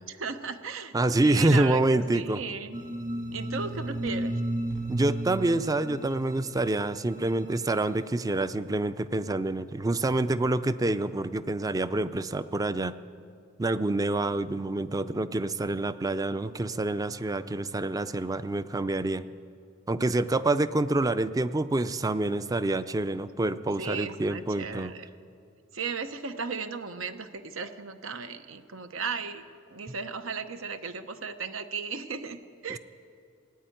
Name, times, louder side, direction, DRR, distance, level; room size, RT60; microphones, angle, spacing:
voice 1, 0.1-0.9 1.2-2.7 3.3-4.4 23.8-25.1 25.7-29.4 29.7-32.8, right 5 dB, 85° right, 10 dB, 0.9 m, -35 dB
voice 2, 0.9-2.4 4.9-12.9 13.6-19.2 19.9-24.9 32.7-32.8, right 2 dB, 20° right, 14 dB, 0.4 m, -27 dB
sound 1, 2.7-7.9, right 1 dB, 40° right, 1.8 m, -34 dB
16.5 x 9.3 x 9.1 m, 2.4 s
head